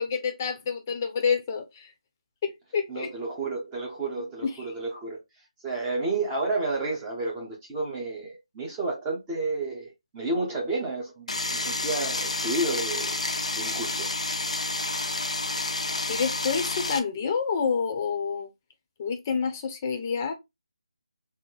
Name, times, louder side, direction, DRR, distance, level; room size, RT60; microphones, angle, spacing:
voice 1, 0.0-1.9 2.4-3.1 4.4-4.5 16.1-18.5 19.0-20.3, left 6 dB, 25° left, 0.8 m, -28 dB
voice 2, 2.9-5.2 5.6-13.2 13.5-14.1, right 2 dB, 15° right, 0.8 m, -31 dB
sound 1, 11.3-17.0, left 2 dB, 90° left, 0.9 m, -29 dB
4.2 x 2.1 x 3.9 m
figure-of-eight pair, 165°, 3 cm